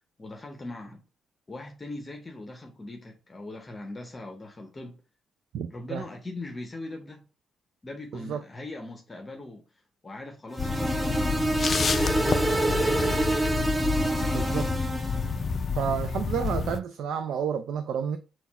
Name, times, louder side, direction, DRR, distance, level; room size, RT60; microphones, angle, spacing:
voice 1, 0.2-1.0 1.5-5.0 5.7-7.2 7.8-9.6 10.0-11.4 11.7-13.2, left 2 dB, 25° left, 0.7 m, -40 dB
voice 2, 5.5-6.0 8.1-8.4 14.3-14.7 15.7-18.2, right 8 dB, 75° right, 0.4 m, -30 dB
sound 1, 10.5-15.3, right 2 dB, 15° right, 0.5 m, -27 dB
sound 2, 10.6-16.8, left 5 dB, 40° left, 0.3 m, -29 dB
4.1 x 2.3 x 4.0 m
cardioid pair, 90°, 0 cm